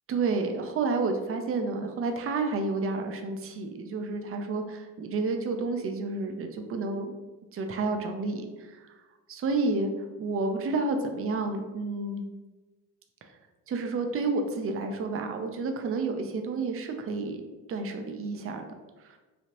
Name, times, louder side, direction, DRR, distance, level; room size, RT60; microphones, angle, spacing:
voice 1, 0.1-7.1 7.5-9.0 9.3-9.9 10.2-12.3 13.2-13.3 13.7-17.4 17.7-18.7 19.1-19.2, right 3 dB, 35° right, 5 dB, 0.5 m, -30 dB
3.2 x 2.4 x 2.8 m, 1.2 s
supercardioid pair, 65°, 42 cm